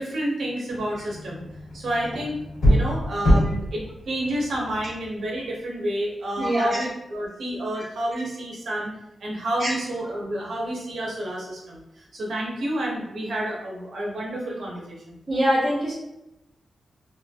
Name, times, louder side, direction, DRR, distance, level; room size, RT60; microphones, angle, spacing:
voice 1, 0.0-8.9 9.2-15.2, right 1 dB, 75° right, -3 dB, 0.8 m, -30 dB
sound 1, 0.7-5.6, equal, 90° left, 1.0 m, -25 dB
voice 2, 6.4-6.8 9.6-9.7 15.3-15.9, equal, 25° right, -10 dB, 1.4 m, -23 dB
3.2 x 2.5 x 2.3 m, 0.89 s
wide cardioid pair, 175°, 0 cm